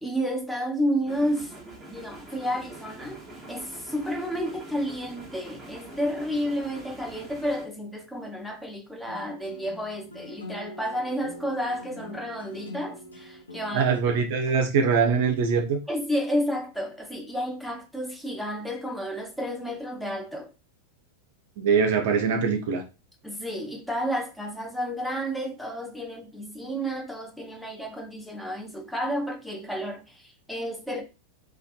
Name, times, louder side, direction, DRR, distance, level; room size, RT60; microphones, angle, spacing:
voice 1, 0.0-1.5 1.9-13.9 15.9-20.5 23.2-31.0, equal, 5° left, 0.6 m, -31 dB
sound 1, 1.1-7.7, right 2 dB, 15° right, 1.0 m, -44 dB
sound 2, 9.1-14.0, left 1 dB, 75° left, 0.5 m, -43 dB
voice 2, 13.7-15.8 21.6-22.8, right 5 dB, 50° right, 0.5 m, -23 dB
2.5 x 2.3 x 2.4 m
figure-of-eight pair, 90°, 0 cm